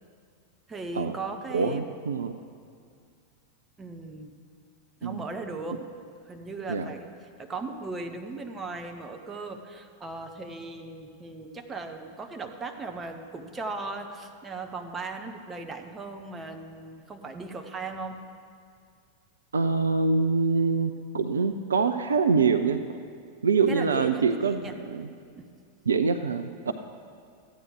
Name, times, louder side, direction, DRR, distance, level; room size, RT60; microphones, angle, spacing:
voice 1, 0.7-2.0 3.8-4.3 5.0-5.8 6.2-7.1 7.4-18.2 23.7-24.8 25.3-25.5 26.7-26.8, right 3 dB, 20° right, 4 dB, 1.0 m, -37 dB
voice 2, 1.5-2.3 5.0-5.2 6.7-6.9 19.5-23.0 23.4-25.1 25.9-26.7, right 4 dB, 70° right, 9 dB, 0.4 m, -25 dB
14.0 x 9.1 x 5.0 m, 2.3 s
figure-of-eight pair, 90°, 0 cm